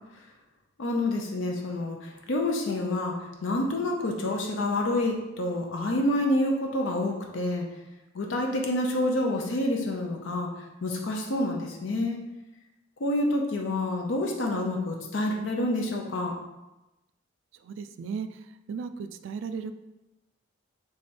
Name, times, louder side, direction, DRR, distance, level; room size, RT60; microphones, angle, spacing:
voice 1, 0.8-3.1 3.4-7.7 8.1-10.5 10.8-12.2 13.0-16.3, left 1 dB, 65° left, 1 dB, 0.6 m, -28 dB
voice 2, 17.6-18.3 18.7-19.7, right 5 dB, 70° right, 10 dB, 0.3 m, -35 dB
3.5 x 3.3 x 4.2 m, 1.0 s
head